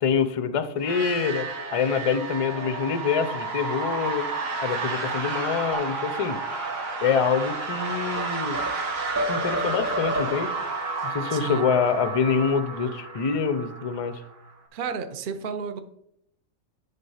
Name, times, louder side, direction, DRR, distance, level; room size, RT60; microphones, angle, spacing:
voice 1, 0.0-1.5 1.7-4.3 4.6-6.4 7.0-8.6 9.3-10.5 11.0-14.2, left 6 dB, 45° left, 11 dB, 0.4 m, -25 dB
sound 1, 0.8-14.5, right 3 dB, 85° right, 1.7 m, -32 dB
sound 2, 5.7-8.0, right 7 dB, 65° right, 1.0 m, -40 dB
sound 3, 7.6-8.8 9.2-10.6, equal, 20° right, 0.3 m, -30 dB
voice 2, 11.3-11.6 14.7-15.8, right 6 dB, 50° right, 9 dB, 0.7 m, -32 dB
10.0 x 4.1 x 5.6 m, 0.75 s
omnidirectional pair, 1.4 m